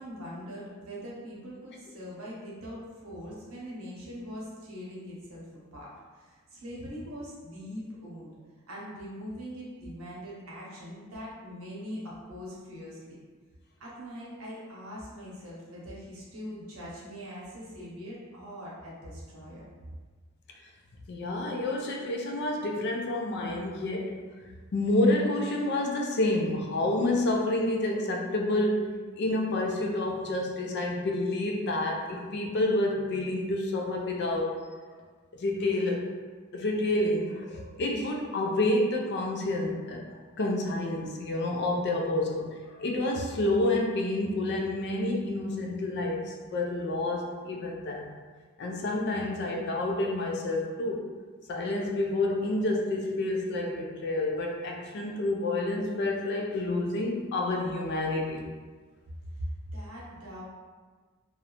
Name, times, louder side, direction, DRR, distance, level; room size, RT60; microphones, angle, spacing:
voice 1, 0.0-5.4 5.7-8.3 8.7-13.2 13.8-19.7 59.3-60.4, equal, 70° right, -5 dB, 0.8 m, -42 dB
voice 2, 21.1-24.3 24.7-28.9 29.2-34.6 35.3-36.1 36.5-40.1 40.4-42.5 42.8-48.1 48.6-51.1 51.5-58.4, left 2 dB, 50° left, 1 dB, 0.4 m, -29 dB
2.5 x 2.0 x 2.9 m, 1.4 s
head